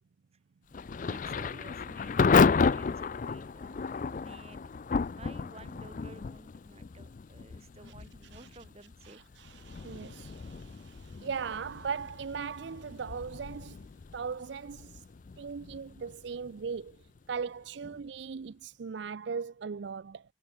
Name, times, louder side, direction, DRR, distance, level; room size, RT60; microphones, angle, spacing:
Thunder / Rain, 0.7-17.4, left 5 dB, 45° left, 0.4 m, -32 dB
voice 1, 1.0-9.2 17.8-18.3, right 2 dB, 35° right, 5.1 m, -53 dB
voice 2, 9.0-13.8 14.1-15.0 15.4-16.9 17.3-20.2, right 6 dB, 65° right, 0.4 m, -38 dB
head